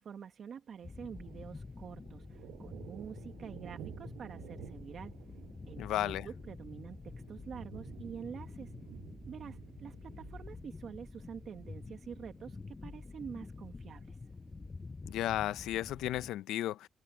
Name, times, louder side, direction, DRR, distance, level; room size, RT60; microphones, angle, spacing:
voice 1, 0.0-5.1 5.7-8.7 9.3-14.2, right 7 dB, 60° right, 1.4 m, -47 dB
Thunder, 0.7-16.3, right 14 dB, 90° right, 5.8 m, -54 dB
sound 1, 0.8-16.3, left 3 dB, 25° left, 6.2 m, -48 dB
voice 2, 5.8-6.3 15.1-16.9, left 13 dB, 85° left, 0.5 m, -34 dB
cardioid pair, 90°, 0 cm